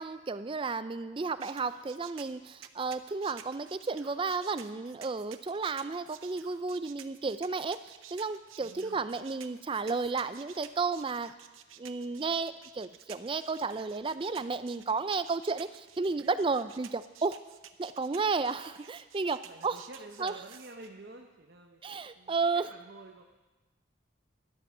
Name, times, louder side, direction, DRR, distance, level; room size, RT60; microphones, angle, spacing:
voice 1, 0.0-11.3 11.8-17.4 17.8-19.8 20.2-20.3 21.8-22.7, right 4 dB, 25° right, 13 dB, 0.4 m, -33 dB
sound 1, 1.4-20.9, right 10 dB, 90° right, 0.8 m, -52 dB
voice 2, 8.6-9.1 19.4-23.2, right 2 dB, 55° right, 2 dB, 0.8 m, -49 dB
13.0 x 11.5 x 5.5 m, 1.2 s
head